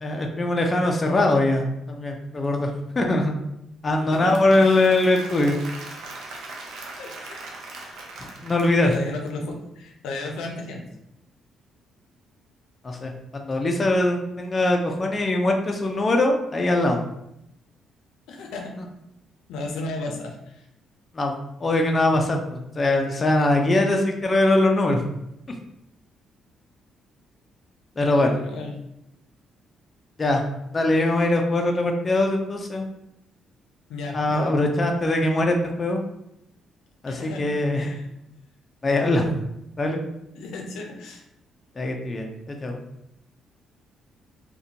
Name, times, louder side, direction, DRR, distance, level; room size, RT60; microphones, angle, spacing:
voice 1, 0.0-2.7 3.0-3.3 3.8-5.6 8.2-8.9 12.8-17.0 21.1-21.3 21.6-25.0 25.5-25.6 28.0-28.4 30.2-30.4 30.7-32.9 34.1-36.0 37.0-37.9 38.8-39.3 39.8-40.0 41.8-42.8, left 2 dB, 30° left, 2 dB, 0.4 m, -22 dB
voice 2, 4.0-4.3 4.6-4.8 7.0-7.4 8.8-10.8 18.3-18.7 19.5-20.7 28.2-28.7 33.9-34.6 37.1-37.5 37.8-38.1 40.3-41.2, left 2 dB, 90° left, 1 dB, 0.4 m, -34 dB
Applause / Crowd, 4.0-9.3, right 3 dB, 80° right, 0.4 m, -40 dB
2.4 x 2.1 x 2.7 m, 0.82 s
cardioid pair, 90°, 0 cm